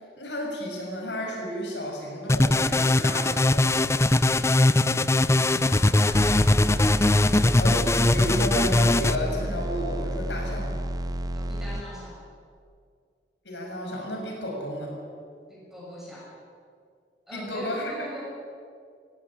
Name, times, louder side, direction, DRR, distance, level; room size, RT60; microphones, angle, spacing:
voice 1, 0.2-3.7 7.6-10.7 13.4-14.9 17.3-17.9, left 1 dB, 80° left, 0 dB, 6.5 m, -32 dB
sound 1, 2.3-9.2, left 2 dB, 15° left, 0.5 m, -21 dB
voice 2, 5.3-6.5 11.3-12.2 15.5-16.3 17.3-18.2, equal, ahead, -5 dB, 5.9 m, -41 dB
sound 2, 6.1-11.8, right 1 dB, 20° right, 0.7 m, -31 dB
18.5 x 16.0 x 10.0 m, 2.2 s
head